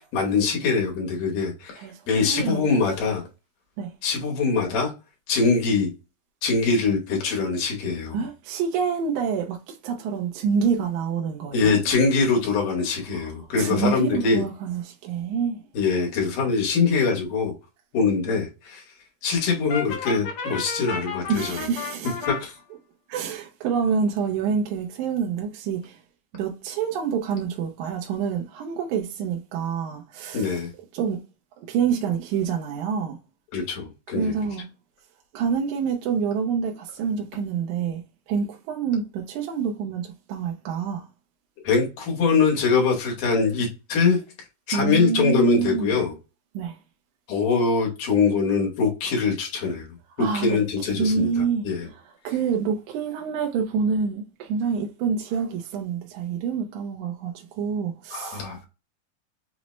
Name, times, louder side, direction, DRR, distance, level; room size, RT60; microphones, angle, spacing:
voice 1, 0.1-3.2 4.0-4.9 5.3-5.9 6.4-8.2 11.5-14.4 15.7-17.5 17.9-18.8 19.2-21.6 22.2-22.5 30.3-30.7 33.5-34.3 41.6-44.2 44.7-46.1 47.3-49.9 50.2-51.9 58.1-58.6, left 4 dB, 75° left, 2.6 m, -23 dB
voice 2, 1.8-2.7 3.8-3.9 8.1-11.8 13.1-15.6 21.3-22.3 23.1-26.0 26.3-30.6 30.9-31.2 31.7-33.2 34.1-34.7 35.3-41.1 44.7-46.0 46.5-46.8 50.2-50.6 51.0-58.7, right 6 dB, 75° right, 1.9 m, -27 dB
Brass instrument, 19.7-22.4, left 5 dB, 60° left, 1.5 m, -32 dB
6.0 x 2.1 x 3.0 m
omnidirectional pair, 3.9 m